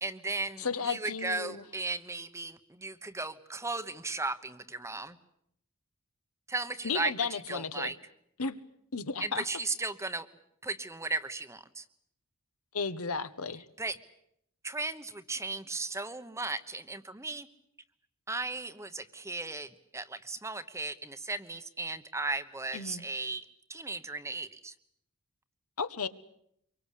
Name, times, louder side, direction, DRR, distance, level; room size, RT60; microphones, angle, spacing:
voice 1, 0.0-5.2 6.5-8.0 9.2-10.3 10.6-11.8 13.8-14.0 14.6-17.5 18.3-23.4 23.7-24.7, right 3 dB, 15° right, 11 dB, 1.1 m, -36 dB
voice 2, 0.6-1.6 6.8-7.9 8.4-8.6 8.9-9.4 12.7-13.6 22.7-23.0 25.8-26.1, left 5 dB, 70° left, 11 dB, 1.3 m, -34 dB
25.0 x 23.5 x 8.4 m, 0.74 s
head